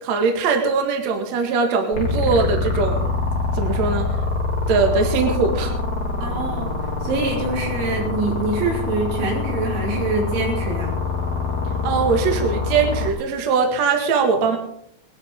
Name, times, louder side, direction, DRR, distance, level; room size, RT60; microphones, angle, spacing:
voice 1, 0.0-3.0 3.5-4.1 4.7-5.7 11.8-14.6, right 5 dB, 50° right, 3 dB, 2.4 m, -21 dB
sound 1, 1.9-13.1, left 4 dB, 40° left, 1.3 m, -25 dB
voice 2, 6.2-6.7 7.0-10.9, right 3 dB, 85° right, -1 dB, 6.0 m, -25 dB
21.0 x 12.0 x 3.8 m, 0.72 s
omnidirectional pair, 5.3 m